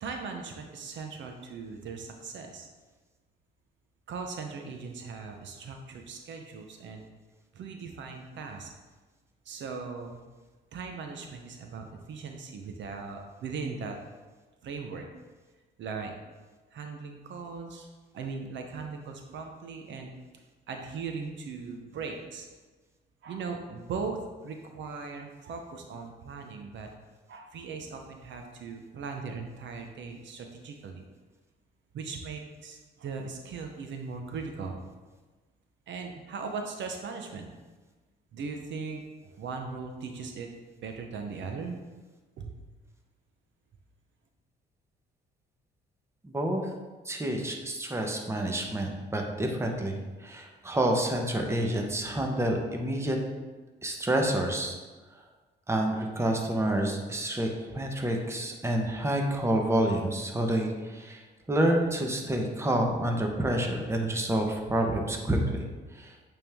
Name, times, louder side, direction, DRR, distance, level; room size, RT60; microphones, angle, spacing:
voice 1, 0.0-2.7 4.1-7.0 7.5-8.7 9.5-10.2 10.7-14.0 14.6-15.1 15.8-16.1 16.7-17.9 18.1-20.1 20.7-22.5 23.2-26.9 27.3-31.0 31.9-34.9 35.9-37.5 38.3-40.5 40.8-41.8 42.4-42.6, right 4 dB, 65° right, 4 dB, 0.8 m, -39 dB
voice 2, 46.2-46.6 47.0-53.2 53.8-54.7 55.7-65.6 65.9-66.2, right 1 dB, 15° right, 2 dB, 0.9 m, -28 dB
8.4 x 3.6 x 3.5 m, 1.3 s
cardioid pair, 90°, 20 cm